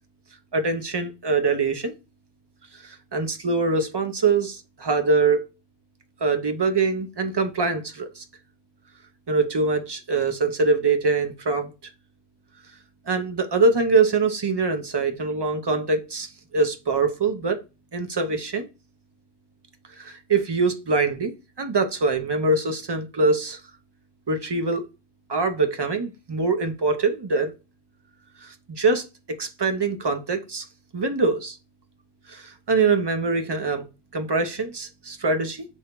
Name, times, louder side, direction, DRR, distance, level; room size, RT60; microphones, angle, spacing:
voice 1, 0.5-1.9 2.7-5.4 6.2-8.2 9.3-11.7 13.1-17.6 17.9-18.7 20.0-23.6 24.3-24.8 25.3-27.5 28.4-29.1 29.4-30.6 30.9-31.6 32.3-33.9 34.1-35.7, right 3 dB, 45° right, 0.3 m, -23 dB
4.4 x 3.3 x 2.9 m
omnidirectional pair, 1.1 m